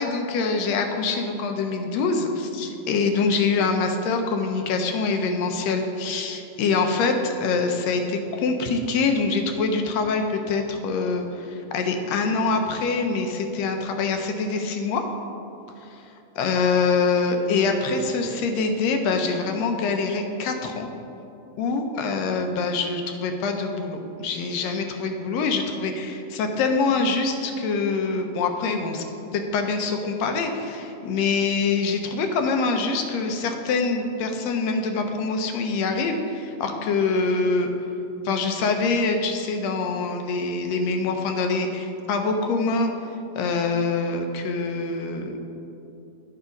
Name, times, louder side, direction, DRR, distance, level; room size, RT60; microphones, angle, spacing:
voice 1, 0.0-15.0 15.9-16.0 16.4-20.9 21.6-29.0 29.3-37.7 38.3-42.9 43.4-45.4, left 4 dB, 75° left, 5 dB, 1.8 m, -25 dB
11.0 x 4.8 x 5.1 m, 2.8 s
omnidirectional pair, 3.3 m